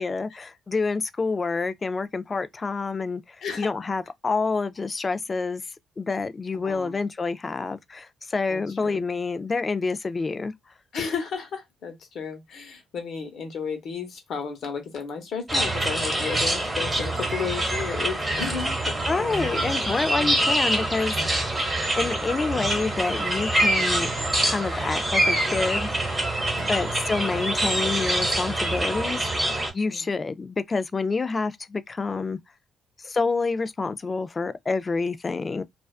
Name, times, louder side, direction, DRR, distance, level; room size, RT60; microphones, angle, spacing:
voice 1, 0.0-3.2 3.6-5.6 6.0-10.5 19.1-21.2 22.0-24.1 24.4-25.9 26.6-29.2 29.7-32.4 33.0-35.6, left 4 dB, 30° left, 0.3 m, -27 dB
voice 2, 6.6-7.0 8.5-9.0 10.9-19.7 26.6-27.0 29.8-30.1, left 6 dB, 65° left, 0.9 m, -33 dB
sound 1, 15.5-29.7, right 1 dB, 15° right, 1.0 m, -25 dB
sound 2, 18.3-18.8 19.2-19.7 20.1-20.6 21.1-21.5 22.5-22.9, equal, 85° right, 0.8 m, -40 dB
2.4 x 2.2 x 2.3 m
cardioid pair, 90°, 0 cm